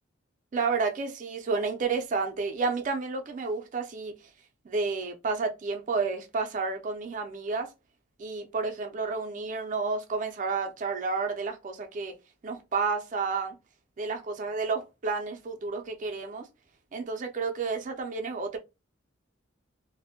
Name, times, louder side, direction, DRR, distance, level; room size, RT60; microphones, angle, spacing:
voice 1, 0.5-4.1 4.7-7.7 8.2-12.2 12.4-13.5 14.0-16.4 16.9-18.6, right 4 dB, 40° right, 0.4 m, -31 dB
2.5 x 2.0 x 2.7 m
head